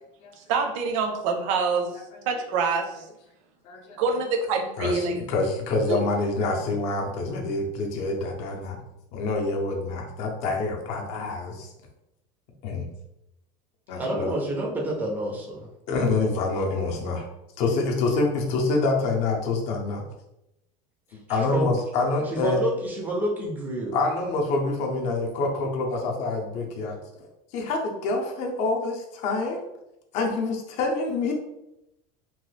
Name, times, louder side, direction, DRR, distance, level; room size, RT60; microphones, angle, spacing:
voice 1, 0.4-3.1 4.0-5.2 5.9-6.0, right 4 dB, 70° right, 4 dB, 0.6 m, -26 dB
voice 2, 3.6-4.0 4.8-8.8 9.1-11.7 12.6-12.9 13.9-14.3 15.9-17.2 17.6-20.0 21.3-22.6 23.9-27.0 27.5-29.6 30.1-31.3, left 3 dB, 40° left, 1 dB, 0.5 m, -26 dB
voice 3, 14.0-15.7 21.1-21.7 22.3-24.0, right 1 dB, 10° right, -1 dB, 0.4 m, -29 dB
3.0 x 2.3 x 3.2 m, 0.88 s
cardioid pair, 180°, 17 cm